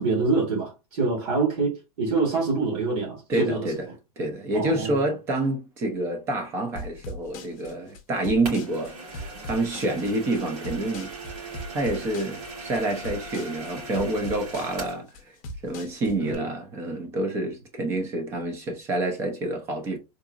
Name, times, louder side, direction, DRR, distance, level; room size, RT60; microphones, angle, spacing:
voice 1, 0.0-3.7 4.5-5.0 16.2-16.5, right 3 dB, 65° right, 1.5 m, -26 dB
voice 2, 3.3-3.9 4.2-11.1 11.7-15.1 15.6-20.0, right 2 dB, 15° right, 0.5 m, -28 dB
sound 1, 6.8-16.4, left 1 dB, 30° left, 0.7 m, -39 dB
sound 2, 8.4-15.0, right 3 dB, 90° right, 2.1 m, -39 dB
3.8 x 2.7 x 2.4 m
supercardioid pair, 180°, 19 cm